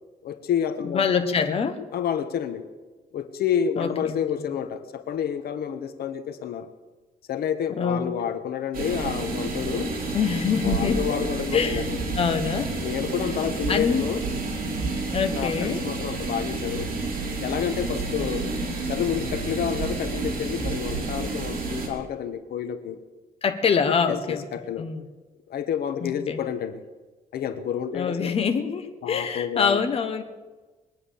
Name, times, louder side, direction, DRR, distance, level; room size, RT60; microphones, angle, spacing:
voice 1, 0.2-1.0 1.9-2.6 3.1-6.7 7.3-9.9 10.6-12.0 12.8-14.2 15.3-16.9 17.4-18.5 18.9-23.0 24.1-24.9 25.5-26.8 27.3-28.4 29.0-29.8, left 8 dB, 80° left, 9 dB, 1.2 m, -29 dB
voice 2, 0.8-1.8 3.8-4.2 7.8-8.0 10.1-11.1 11.5-12.7 13.7-14.1 15.1-15.8 18.1-18.7 23.4-24.4 24.8-25.0 26.0-26.4 27.9-30.2, left 6 dB, 40° left, 6 dB, 1.2 m, -25 dB
sound 1, 8.7-21.9, right 3 dB, 65° right, 3.8 m, -30 dB
21.0 x 9.6 x 7.0 m, 1.3 s
wide cardioid pair, 160°, 16 cm